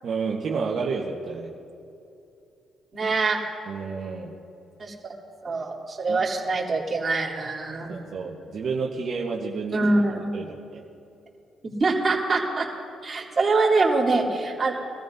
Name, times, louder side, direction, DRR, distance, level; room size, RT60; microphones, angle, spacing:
voice 1, 0.0-1.5 3.7-4.4 6.1-6.2 7.9-9.8 10.3-10.8, right 5 dB, 65° right, -4 dB, 1.3 m, -30 dB
voice 2, 2.9-3.4 4.8-5.1 5.4-7.9 9.7-10.3 11.6-12.6 13.0-14.7, right 3 dB, 35° right, -4 dB, 3.3 m, -24 dB
23.5 x 14.0 x 2.8 m, 2.7 s
cardioid pair, 75°, 0 cm